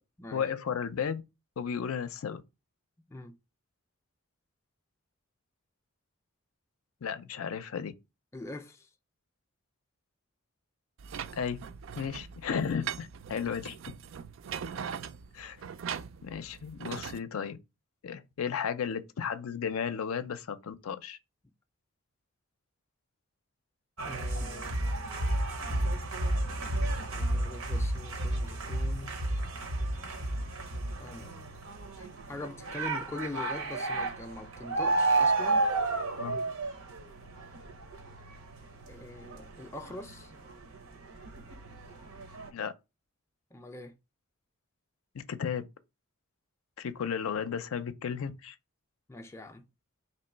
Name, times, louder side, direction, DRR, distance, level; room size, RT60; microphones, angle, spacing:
voice 1, 0.3-1.2 1.6-2.4 7.0-7.9 11.3-11.6 12.0-13.8 15.3-15.6 16.2-17.6 18.0-21.2 36.2-36.4 42.5-42.7 45.1-45.6 46.8-48.6, left 7 dB, 85° left, 0.5 m, -34 dB
voice 2, 8.3-8.9 24.0-24.7 27.1-29.1 31.0-31.5 32.0-35.7 38.9-40.3 43.5-43.9 49.1-49.7, left 2 dB, 15° left, 0.3 m, -43 dB
sound 1, 11.0-17.2, right 7 dB, 65° right, 0.3 m, -41 dB
sound 2, 24.0-40.8 41.1-42.5, right 2 dB, 85° right, 0.8 m, -32 dB
3.0 x 3.0 x 4.3 m
head